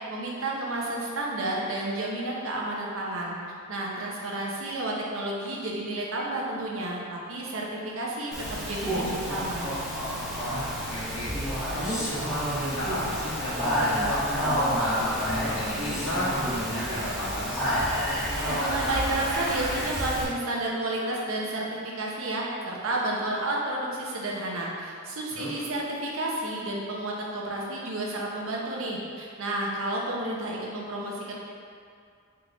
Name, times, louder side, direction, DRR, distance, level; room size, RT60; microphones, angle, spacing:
voice 1, 0.1-3.4 3.7-9.7 18.4-21.6 22.0-31.3, right 2 dB, 65° right, -3 dB, 0.7 m, -31 dB
Speech, 8.3-20.2, equal, ahead, 0.8 m, -29 dB
voice 2, 10.4-11.3 11.7-17.8 25.4-25.5, equal, 85° left, -7 dB, 1.2 m, -32 dB
3.5 x 3.3 x 3.9 m, 2.3 s
head